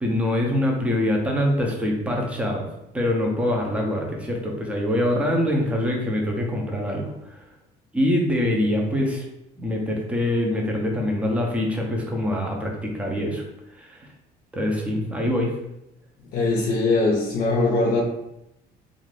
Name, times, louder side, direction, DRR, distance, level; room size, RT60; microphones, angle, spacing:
voice 1, 0.0-2.6 2.9-7.4 7.9-9.3 9.6-13.4 13.7-14.1 14.5-15.5, left 1 dB, 5° right, 0 dB, 0.6 m, -24 dB
voice 2, 16.3-18.0, left 3 dB, 65° left, -2 dB, 0.6 m, -21 dB
2.5 x 2.5 x 3.3 m, 0.85 s
cardioid pair, 110°, 17 cm